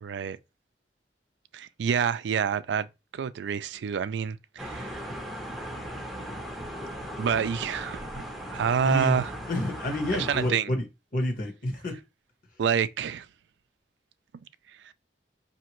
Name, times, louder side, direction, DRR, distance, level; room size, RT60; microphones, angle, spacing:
voice 1, 0.0-0.4 1.5-2.9 3.1-5.0 7.2-8.1 8.5-9.3 10.2-10.7 12.6-13.3, right 7 dB, 75° right, 0.3 m, -27 dB
sound 1, 4.6-10.5, equal, ahead, 0.6 m, -38 dB
voice 2, 8.8-10.8 11.1-12.0, left 1 dB, 50° left, 1.2 m, -29 dB
5.1 x 2.8 x 2.9 m
head